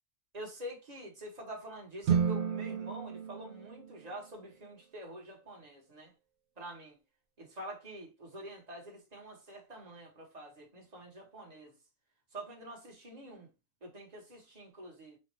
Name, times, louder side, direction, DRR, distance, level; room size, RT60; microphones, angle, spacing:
voice 1, 0.3-6.1 6.6-7.0 7.4-11.7 12.3-13.5 13.8-15.2, right 1 dB, 30° right, 1.3 m, -46 dB
sound 1, 2.0-4.5, right 7 dB, 65° right, 1.0 m, -32 dB
4.3 x 2.6 x 3.2 m
omnidirectional pair, 1.4 m